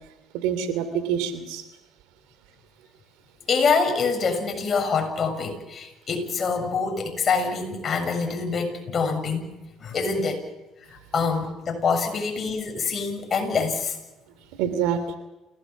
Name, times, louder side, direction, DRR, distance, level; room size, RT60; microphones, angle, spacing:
voice 1, 0.3-1.6 14.5-15.2, right 8 dB, 85° right, 11 dB, 3.1 m, -26 dB
voice 2, 3.5-9.5 9.8-10.4 10.8-14.0, left 5 dB, 40° left, 4 dB, 7.2 m, -25 dB
28.5 x 18.0 x 7.4 m, 1.0 s
supercardioid pair, 85°, 0 cm